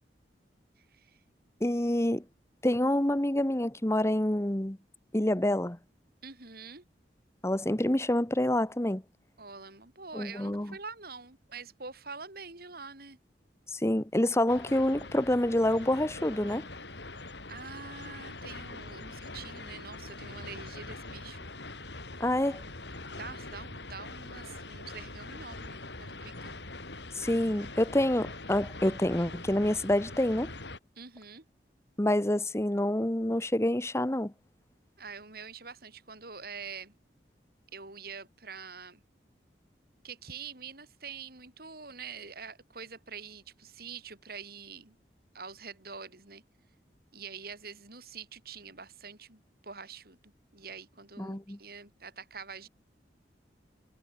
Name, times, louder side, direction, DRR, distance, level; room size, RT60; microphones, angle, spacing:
voice 1, 0.8-1.2 6.2-6.8 9.4-13.2 17.5-21.5 23.1-26.5 31.0-31.4 35.0-36.9 37.7-39.0 40.0-45.0 45.3-46.4 47.1-52.7, right 5 dB, 60° right, 5.5 m, -45 dB
voice 2, 1.6-2.2 2.6-4.8 5.1-5.8 7.4-9.0 10.1-10.7 13.7-16.6 22.2-22.6 27.2-30.5 32.0-34.3 51.2-51.6, left 1 dB, 15° left, 1.1 m, -27 dB
sound 1, 14.5-30.8, left 2 dB, 80° left, 6.0 m, -43 dB
head